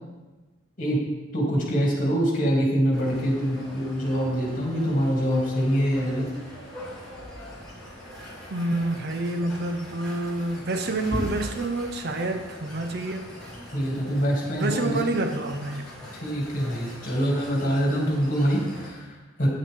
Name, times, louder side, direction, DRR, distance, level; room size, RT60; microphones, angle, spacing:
voice 1, 1.3-6.2 13.7-15.0 16.1-19.5, equal, 40° left, -3 dB, 2.5 m, -25 dB
sound 1, 2.9-18.9, equal, 5° left, 3.4 m, -40 dB
voice 2, 8.5-13.3 14.6-15.9, right 2 dB, 50° right, 6 dB, 0.6 m, -28 dB
9.2 x 8.7 x 3.7 m, 1.2 s
head